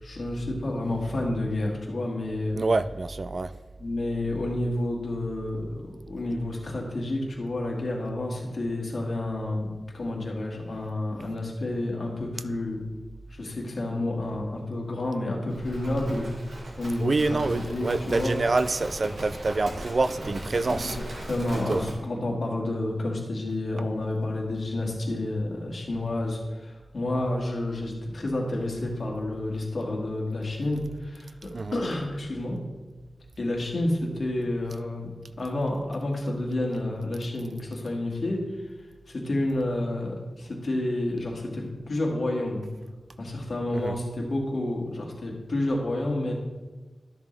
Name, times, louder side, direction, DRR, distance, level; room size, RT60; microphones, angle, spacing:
voice 1, 0.0-2.6 3.8-9.7 9.9-12.8 13.3-16.3 16.8-18.3 20.7-32.6 33.4-35.1 35.4-38.7 39.1-42.6 43.2-46.3, left 1 dB, 55° left, -2 dB, 2.2 m, -30 dB
voice 2, 2.5-3.5 16.1-16.2 17.0-21.0 21.7-21.8 31.5-31.8 43.7-43.9, right 3 dB, 50° right, 12 dB, 0.3 m, -26 dB
Livestock farm animals working animals, 15.5-22.0, right 1 dB, 75° right, 2.0 m, -38 dB
12.5 x 6.9 x 3.4 m, 1.3 s
wide cardioid pair, 105°, 0 cm